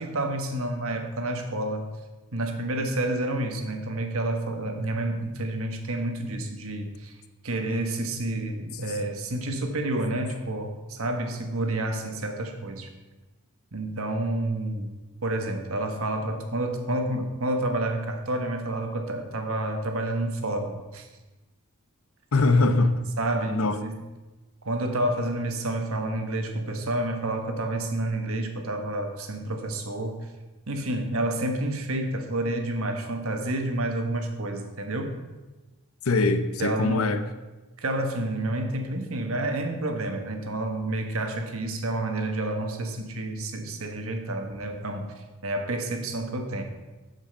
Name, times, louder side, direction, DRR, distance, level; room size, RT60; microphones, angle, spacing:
voice 1, 0.0-1.9 2.3-7.1 7.4-12.9 13.7-14.9 15.2-21.1 23.2-24.0 24.6-30.3 30.7-35.2 36.6-37.1 37.8-46.6, right 1 dB, 65° right, 5 dB, 1.2 m, -29 dB
voice 2, 22.3-23.1 23.5-23.8 36.0-37.2, left 3 dB, 70° left, 9 dB, 0.7 m, -22 dB
7.9 x 7.2 x 5.5 m, 1.1 s
head